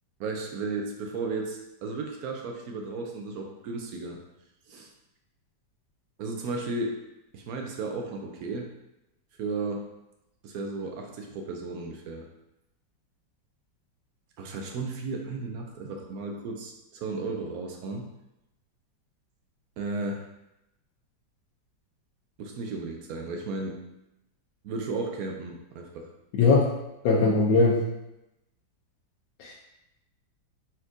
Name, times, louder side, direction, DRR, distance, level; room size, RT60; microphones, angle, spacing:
voice 1, 0.2-4.2 4.7-4.9 6.2-7.0 7.3-8.7 9.4-9.9 10.4-12.2 14.4-18.1 19.8-20.2 22.4-23.8 24.6-26.1, right 3 dB, 70° right, 2 dB, 0.9 m, -34 dB
voice 2, 26.3-26.7 27.0-27.8 29.4-29.5, left 3 dB, 85° left, -4 dB, 1.5 m, -20 dB
4.4 x 4.1 x 2.5 m, 0.90 s
omnidirectional pair, 2.0 m